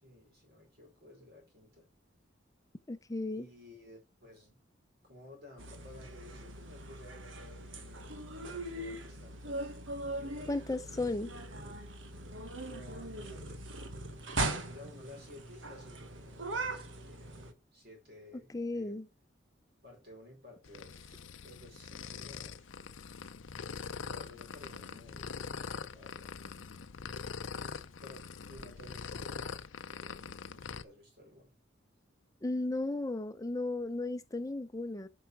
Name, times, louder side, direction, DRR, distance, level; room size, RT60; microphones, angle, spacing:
voice 1, 0.0-1.9 3.3-4.6 5.0-9.7 10.1-11.0 12.6-13.6 14.3-19.0 19.8-22.7 23.9-26.4 27.3-31.5, left 1 dB, 55° right, 5.0 m, -55 dB
voice 2, 2.9-3.5 10.5-11.3 18.5-19.1 32.4-35.1, left 2 dB, 20° left, 0.7 m, -35 dB
sound 1, 5.6-17.5, right 2 dB, 85° right, 1.4 m, -40 dB
sound 2, 20.6-30.8, left 5 dB, 85° left, 0.6 m, -43 dB
8.1 x 5.7 x 4.7 m
head